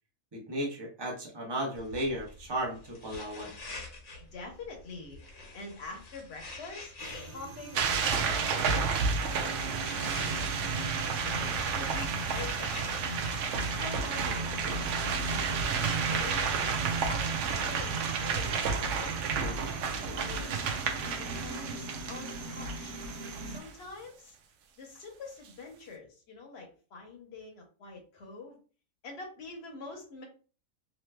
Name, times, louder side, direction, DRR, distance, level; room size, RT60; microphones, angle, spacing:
voice 1, 0.3-3.5 19.4-19.7, right 1 dB, 20° right, -1 dB, 0.8 m, -35 dB
sound 1, 1.7-17.5, left 2 dB, 75° left, 1.4 m, -49 dB
voice 2, 4.2-12.7 13.1-14.9 15.3-20.6 21.0-22.9 23.4-24.3 24.8-28.6 29.0-30.2, left 3 dB, 50° left, 1 dB, 1.1 m, -46 dB
sound 2, 7.0-23.6, right 2 dB, 90° right, 1.1 m, -40 dB
sound 3, 7.7-23.7, right 5 dB, 70° right, 0.8 m, -31 dB
3.1 x 3.1 x 2.2 m, 0.37 s
omnidirectional pair, 1.5 m